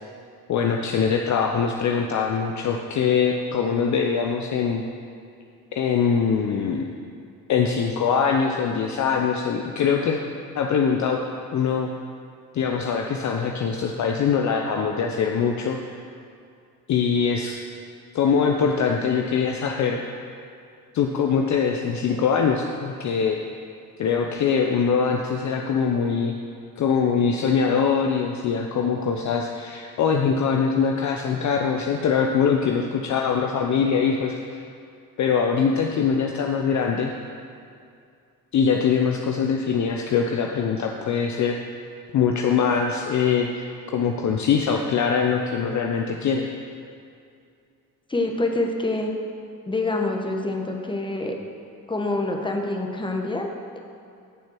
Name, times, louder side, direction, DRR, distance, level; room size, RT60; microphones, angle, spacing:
voice 1, 0.5-4.8 5.7-6.8 7.5-10.2 10.5-11.2 11.5-11.9 12.5-15.8 16.9-17.6 18.1-20.0 20.9-23.4 24.0-26.3 26.8-34.6 35.2-37.1 38.5-41.6 42.1-46.4, left 6 dB, 35° left, 2 dB, 0.7 m, -23 dB
voice 2, 48.1-49.1 49.7-51.4 51.9-53.8, left 2 dB, 10° left, 2 dB, 1.2 m, -26 dB
15.0 x 7.2 x 3.1 m, 2.4 s
hypercardioid pair, 55°, 48 cm